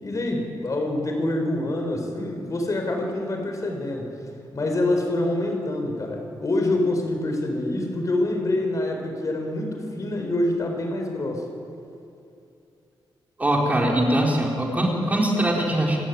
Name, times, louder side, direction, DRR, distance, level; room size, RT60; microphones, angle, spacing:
voice 1, 0.0-4.1 4.5-11.4, left 1 dB, 40° left, 3 dB, 4.5 m, -26 dB
voice 2, 13.4-16.0, right 1 dB, 15° right, -1 dB, 4.0 m, -22 dB
28.0 x 16.0 x 9.4 m, 2.5 s
wide cardioid pair, 130°, 9 cm